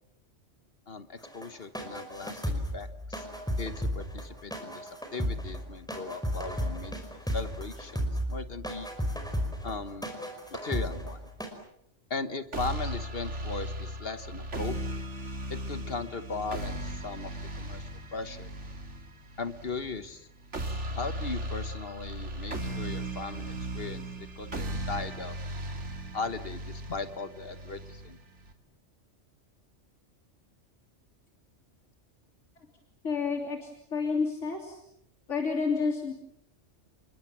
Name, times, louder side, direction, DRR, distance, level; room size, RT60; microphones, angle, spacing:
voice 1, 0.9-3.3 3.6-8.9 9.6-10.1 10.5-11.2 12.1-14.8 15.5-17.3 17.5-17.8 18.1-18.5 19.4-20.3 21.0-25.4 26.1-28.2, left 4 dB, 55° left, 11 dB, 1.4 m, -38 dB
sound 1, 1.2-11.5, equal, 5° left, 5.0 m, -34 dB
sound 2, 12.5-28.5, right 1 dB, 75° right, 3.0 m, -37 dB
voice 2, 33.0-34.8 35.3-36.1, left 4 dB, 90° left, 1 dB, 3.5 m, -30 dB
30.0 x 21.5 x 7.4 m, 0.78 s
omnidirectional pair, 1.2 m